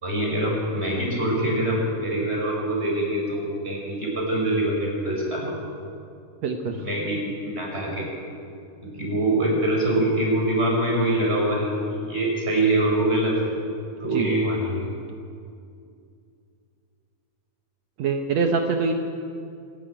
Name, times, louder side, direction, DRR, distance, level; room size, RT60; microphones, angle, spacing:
voice 1, 0.0-5.5 6.7-7.2 7.4-8.0 8.8-13.6 14.0-14.9, right 1 dB, 20° right, -3 dB, 6.0 m, -24 dB
voice 2, 6.4-6.9 14.1-14.4 18.0-18.9, right 5 dB, 65° right, 4 dB, 2.0 m, -24 dB
25.5 x 11.5 x 8.9 m, 2.4 s
omnidirectional pair, 3.7 m